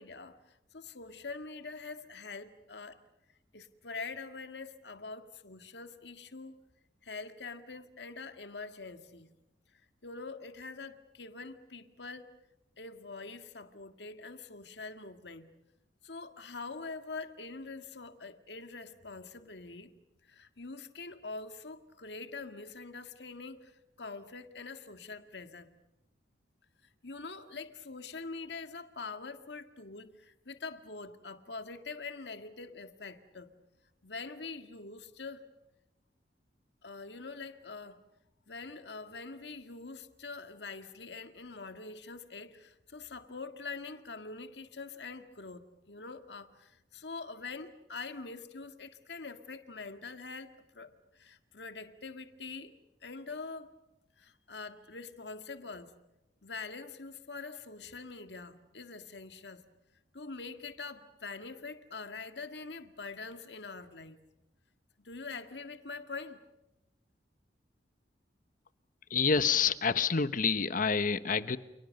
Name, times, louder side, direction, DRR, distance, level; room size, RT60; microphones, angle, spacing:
voice 1, 0.0-3.0 3.5-6.6 7.0-9.3 10.0-12.3 12.8-15.5 16.0-19.9 20.3-25.7 27.0-33.5 34.0-35.5 36.8-38.0 38.5-52.7 53.0-53.7 54.2-55.9 56.4-59.6 60.1-64.2 65.0-66.4, left 4 dB, 70° left, 1.9 m, -44 dB
voice 2, 69.1-71.6, left 5 dB, 50° left, 1.1 m, -28 dB
29.5 x 28.5 x 6.6 m
head